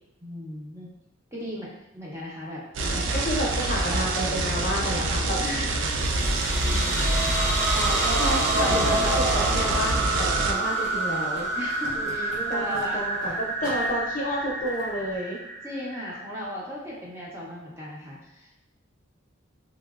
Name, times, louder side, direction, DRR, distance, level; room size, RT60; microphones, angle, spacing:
voice 1, 0.2-0.9 1.3-3.2 3.8-4.5 5.4-5.7 6.6-8.4 8.7-9.6 11.5-13.0 15.6-18.5, equal, 15° right, -6 dB, 0.5 m, -36 dB
sound 1, 2.7-10.5, right 2 dB, 65° right, 0.3 m, -26 dB
voice 2, 3.1-5.4 7.9-8.4 8.7-11.5 12.0-15.4, equal, 40° left, -3 dB, 0.6 m, -30 dB
sound 2, 4.4-15.2, right 1 dB, 85° right, 0.9 m, -47 dB
sound 3, 5.8-16.4, right 2 dB, 40° right, 0.9 m, -28 dB
2.9 x 2.8 x 2.3 m, 0.88 s
head